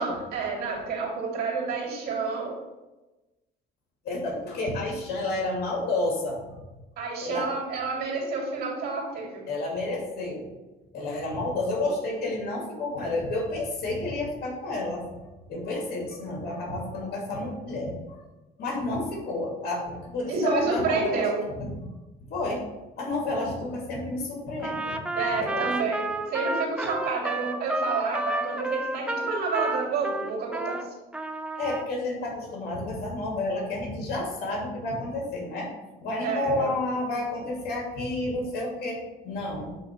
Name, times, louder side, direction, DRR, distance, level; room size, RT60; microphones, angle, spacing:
voice 1, 0.0-2.5 7.0-9.4 20.3-21.4 25.1-30.8 36.2-36.7, right 4 dB, 70° right, -1 dB, 2.6 m, -29 dB
voice 2, 4.0-6.6 7.2-7.5 9.5-10.5 10.9-18.2 18.6-21.3 21.6-21.9 22.3-22.6 23.0-25.0 25.4-25.7 31.6-35.7 36.0-39.7, left 2 dB, 65° left, -3 dB, 2.4 m, -30 dB
Trumpet, 24.6-30.8 31.1-31.9, right 2 dB, 5° right, 0.5 m, -31 dB
8.2 x 2.9 x 5.7 m, 1.1 s
cardioid pair, 110°, 17 cm